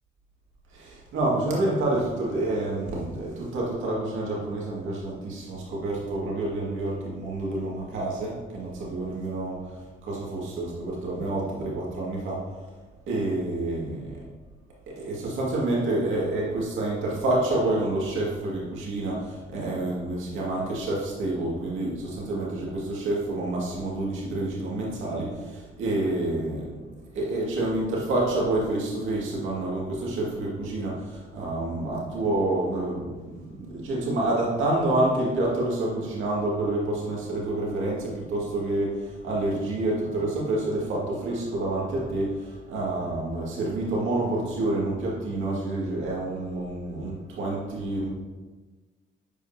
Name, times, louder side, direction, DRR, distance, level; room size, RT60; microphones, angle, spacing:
voice 1, 0.7-12.4 13.1-14.2 14.9-26.8 27.1-48.1, right 2 dB, 80° right, -4 dB, 2.1 m, -28 dB
11.0 x 5.2 x 2.8 m, 1.3 s
cardioid pair, 90°, 20 cm